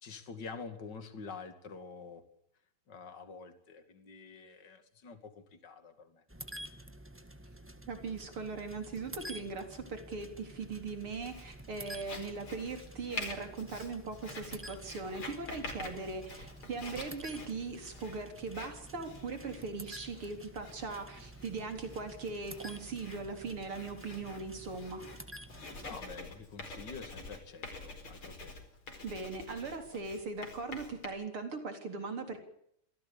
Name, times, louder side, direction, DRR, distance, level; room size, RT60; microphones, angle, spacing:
voice 1, 0.0-2.2 2.9-6.2 25.8-28.5, left 4 dB, 55° left, 9 dB, 3.0 m, -47 dB
sound 1, 6.3-26.0, right 1 dB, 5° right, 1.4 m, -50 dB
voice 2, 7.9-25.0 29.0-32.4, right 4 dB, 80° right, 6 dB, 4.7 m, -40 dB
Writing, 11.2-31.1, left 3 dB, 75° left, 5.5 m, -48 dB
26.5 x 17.0 x 8.5 m, 0.71 s
omnidirectional pair, 2.3 m